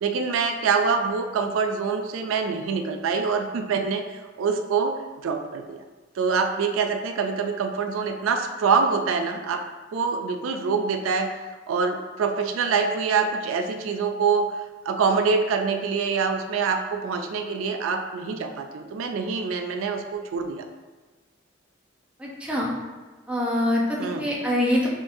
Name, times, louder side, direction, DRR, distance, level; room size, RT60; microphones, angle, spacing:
voice 1, 0.0-4.9 5.2-5.8 6.2-9.6 9.9-11.4 11.7-14.6 14.8-20.7 24.0-24.3, right 5 dB, 90° right, 5 dB, 0.3 m, -25 dB
voice 2, 22.2-22.7 23.3-24.9, left 1 dB, 5° right, -4 dB, 0.7 m, -24 dB
4.9 x 2.6 x 2.6 m, 1.3 s
head